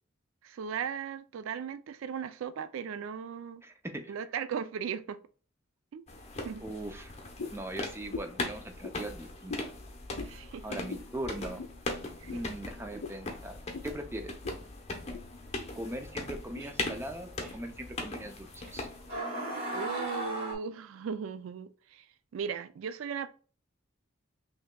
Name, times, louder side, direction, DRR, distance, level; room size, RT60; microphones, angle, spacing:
voice 1, 0.4-3.6 4.1-5.2 5.9-6.0 6.4-6.6 10.2-10.7 12.2-12.4 19.7-22.1 22.3-23.3, right 7 dB, 75° right, 0.3 m, -37 dB
voice 2, 3.6-4.2 6.6-7.1 7.5-9.6 10.6-11.7 12.3-13.6 13.8-14.3 15.8-18.9, right 1 dB, 10° right, 0.4 m, -40 dB
sound 1, 6.1-19.2, left 2 dB, 35° left, 0.7 m, -40 dB
sound 2, 7.4-7.7 8.1-8.4 8.8-9.0 9.5-9.7 10.1-10.3 10.9-11.1 11.6-11.8 12.3-12.4 13.0-13.2 13.7-13.9 14.4-14.6 14.9-15.3 15.8-15.9 16.5-16.7, left 4 dB, 85° left, 0.4 m, -41 dB
sound 3, 15.6-15.7 16.6-16.9 17.4-17.5 18.6-18.7 19.1-20.5, right 1 dB, 50° right, 2.0 m, -36 dB
5.5 x 2.9 x 2.2 m
head